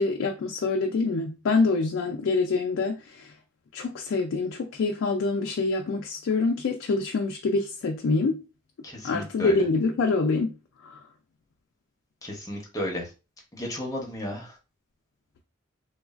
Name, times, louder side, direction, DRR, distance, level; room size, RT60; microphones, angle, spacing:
voice 1, 0.0-3.3 3.7-8.4 9.0-11.0, left 3 dB, 70° left, 0.4 m, -26 dB
voice 2, 8.8-9.6 12.2-13.1 13.5-14.5, left 1 dB, 15° left, 0.7 m, -33 dB
3.1 x 2.3 x 2.3 m
head